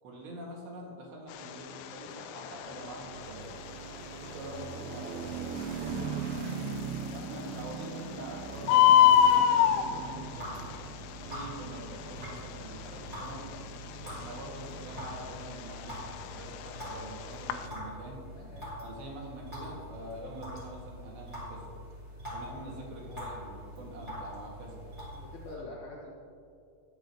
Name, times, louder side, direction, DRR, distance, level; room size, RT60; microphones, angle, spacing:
voice 1, 0.0-3.6 4.1-6.2 7.1-10.7 11.3-13.5 14.0-18.3 18.8-21.7 22.3-24.9, right 1 dB, 70° right, -2 dB, 3.9 m, -45 dB
Bird, 1.3-17.7, left 10 dB, 85° left, 2.8 m, -28 dB
sound 1, 2.6-15.7, right 6 dB, 90° right, 2.1 m, -41 dB
sound 2, 9.5-25.6, equal, 20° right, 2.2 m, -44 dB
voice 2, 18.4-18.8 23.1-23.3 25.1-26.1, left 3 dB, 65° left, -6 dB, 1.9 m, -47 dB
20.0 x 8.1 x 2.9 m, 2.5 s
omnidirectional pair, 5.3 m